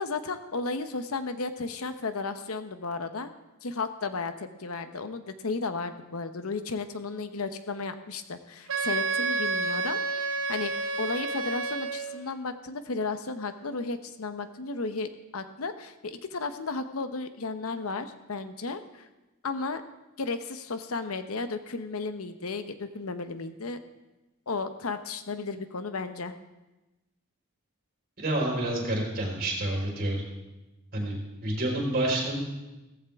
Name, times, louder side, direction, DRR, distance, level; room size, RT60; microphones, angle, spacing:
voice 1, 0.0-3.3 3.6-10.0 10.5-19.1 19.4-19.8 20.2-23.8 24.5-26.3, left 3 dB, 80° left, 9 dB, 0.9 m, -34 dB
Wind instrument woodwind instrument, 8.7-12.3, right 3 dB, 65° right, 1.0 m, -30 dB
voice 2, 28.2-30.2 30.9-31.2 31.4-32.4, right 1 dB, 45° right, -2 dB, 4.6 m, -28 dB
16.5 x 14.5 x 3.6 m, 1.0 s
head